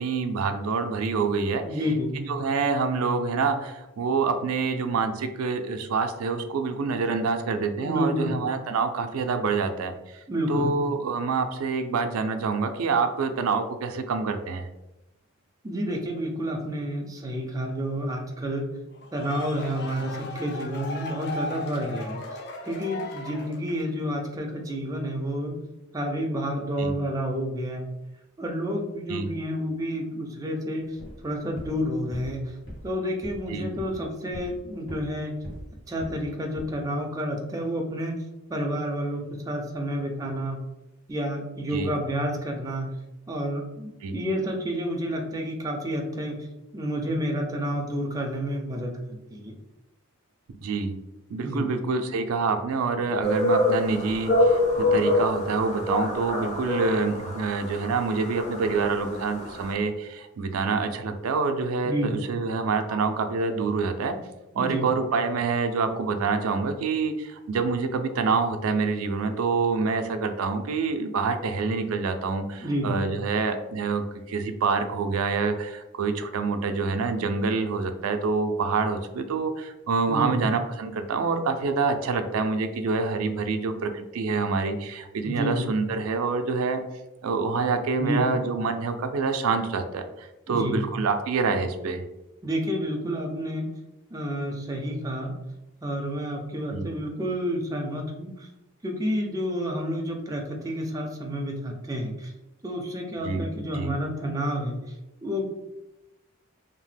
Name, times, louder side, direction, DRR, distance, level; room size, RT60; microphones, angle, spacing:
voice 1, 0.0-1.6 2.2-9.9 10.5-14.7 26.8-26.9 29.1-29.3 33.5-33.7 41.7-41.9 44.0-44.2 50.5-50.9 51.3-64.2 64.5-86.8 87.2-92.0 96.7-96.9 103.2-103.4 103.7-103.9, right 4 dB, 85° right, 7 dB, 0.4 m, -26 dB
voice 2, 1.6-2.2 7.8-8.4 10.3-10.7 15.6-18.6 19.1-22.2 22.6-25.6 25.9-27.9 28.4-30.8 31.2-32.5 32.8-35.3 35.9-38.2 38.5-40.6 41.1-42.9 43.3-46.4 46.7-49.5 51.4-51.7 61.8-62.2 62.9-63.0 64.6-64.9 72.6-73.0 80.1-80.5 85.2-85.7 88.0-88.3 90.5-90.8 92.4-93.7 94.1-95.3 95.8-98.5 98.8-102.3 102.6-104.8 105.2-105.4, equal, 15° right, 1 dB, 0.4 m, -29 dB
sound 1, 18.9-24.0, left 2 dB, 50° left, 0.4 m, -37 dB
sound 2, 30.9-31.2 31.5-31.8 32.1-32.4 32.7-32.9 33.2-33.5 33.8-34.0 34.3-35.2 35.4-35.7 36.0-36.3 36.5-36.7, equal, 70° left, 1.2 m, -40 dB
sound 3, 53.2-59.7, left 1 dB, 35° left, 0.8 m, -26 dB
2.8 x 2.1 x 3.2 m, 0.95 s
head